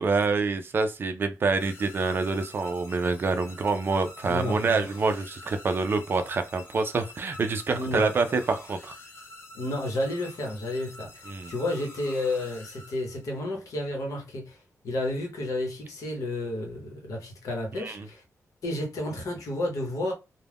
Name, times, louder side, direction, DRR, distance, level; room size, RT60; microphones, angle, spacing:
voice 1, 0.0-8.9 11.3-11.5 17.8-18.1, right 4 dB, 40° right, 0.4 m, -26 dB
sound 1, 1.6-13.4, left 2 dB, 45° left, 0.5 m, -47 dB
voice 2, 4.2-4.8 7.7-8.1 9.5-14.6 14.8-18.2 18.6-20.1, left 1 dB, 70° left, 0.9 m, -31 dB
2.4 x 2.1 x 3.4 m
wide cardioid pair, 175°, 6 cm